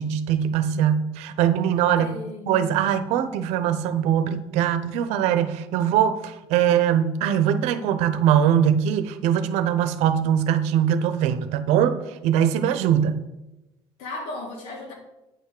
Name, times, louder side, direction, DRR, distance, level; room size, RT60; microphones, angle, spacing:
voice 1, 0.0-2.1 2.5-12.0 12.2-13.1, right 9 dB, 85° right, 12 dB, 0.9 m, -22 dB
voice 2, 2.0-2.7 14.0-14.9, left 2 dB, 80° left, 0 dB, 3.2 m, -35 dB
8.9 x 5.8 x 6.6 m, 0.95 s
cardioid pair, 140°, 11 cm